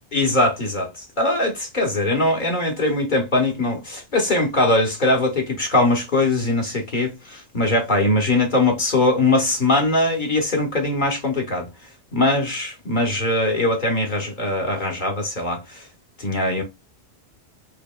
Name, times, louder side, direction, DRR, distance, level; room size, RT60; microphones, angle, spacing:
voice 1, 0.1-11.7 12.1-15.8 16.2-16.6, left 2 dB, 45° left, 1.1 m, -21 dB
4.8 x 2.9 x 2.2 m
omnidirectional pair, 1.2 m